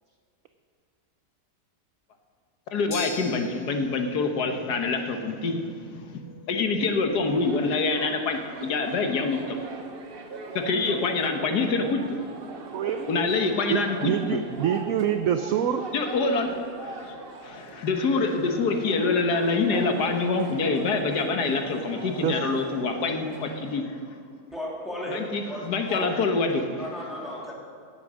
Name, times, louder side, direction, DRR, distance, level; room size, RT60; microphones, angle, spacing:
voice 1, 2.7-6.2 6.5-9.6 10.5-12.2 13.1-14.4 15.9-17.2 17.4-24.0 25.1-26.7, left 3 dB, 70° left, 5 dB, 1.8 m, -26 dB
sound 1, 2.9-11.3, left 3 dB, 90° left, 3.6 m, -46 dB
sound 2, 7.3-23.8, right 3 dB, 40° right, 1.0 m, -41 dB
voice 2, 12.7-13.1 13.7-15.8 22.2-22.4, right 9 dB, 65° right, 8 dB, 0.9 m, -26 dB
voice 3, 24.5-26.0 26.8-27.5, equal, ahead, -5 dB, 3.0 m, -35 dB
17.5 x 8.5 x 6.3 m, 2.3 s
omnidirectional pair, 1.8 m